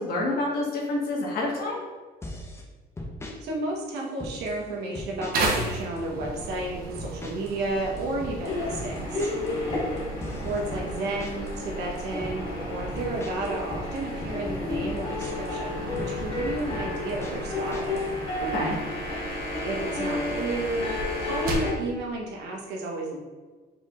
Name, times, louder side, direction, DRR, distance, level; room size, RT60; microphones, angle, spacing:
voice 1, 0.0-1.8 18.4-18.8, left 2 dB, 65° left, -3 dB, 1.4 m, -28 dB
sound 1, 2.2-2.6 3.0-3.4 4.0-4.6 4.9-5.6 5.8-6.4 7.0-7.6 7.8-11.6 12.0-12.4 13.0-15.6 16.0-18.1, left 1 dB, 15° left, 0.8 m, -39 dB
voice 2, 3.4-9.3 10.4-18.0 19.6-20.9 21.2-23.2, right 2 dB, 80° right, -1 dB, 1.1 m, -32 dB
sound 2, 5.3-21.8, right 2 dB, 60° right, 0.9 m, -36 dB
sound 3, 8.5-21.7, left 2 dB, 35° left, 1.3 m, -32 dB
4.8 x 4.0 x 2.4 m, 1.4 s
cardioid pair, 110°, 17 cm